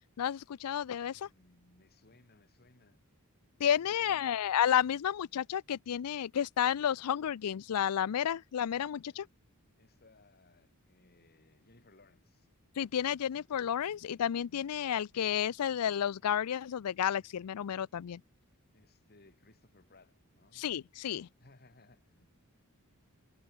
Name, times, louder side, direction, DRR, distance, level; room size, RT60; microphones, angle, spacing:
voice 1, 0.2-1.3 3.6-9.3 12.8-18.2 20.5-21.3, left 9 dB, 85° left, 0.4 m, -31 dB
voice 2, 1.1-3.0 3.6-4.4 9.0-9.2 9.8-12.5 18.7-20.7 21.4-22.3, left 2 dB, 45° left, 2.7 m, -63 dB
head